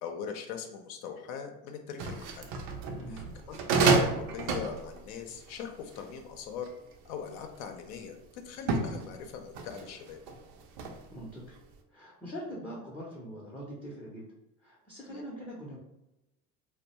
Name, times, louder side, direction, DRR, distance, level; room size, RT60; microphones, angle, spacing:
voice 1, 0.0-2.5 3.1-6.7 7.0-10.2 15.1-15.2, left 7 dB, 70° left, 5 dB, 0.6 m, -41 dB
sound 1, 2.0-7.0 7.6-8.0 8.5-11.3 11.6-11.8, right 4 dB, 75° right, 0.5 m, -30 dB
voice 2, 2.9-3.3 11.1-11.6 11.9-14.2 14.6-15.8, equal, 5° left, -5 dB, 0.4 m, -42 dB
2.2 x 2.0 x 2.8 m, 0.92 s
hypercardioid pair, 85°, 45 cm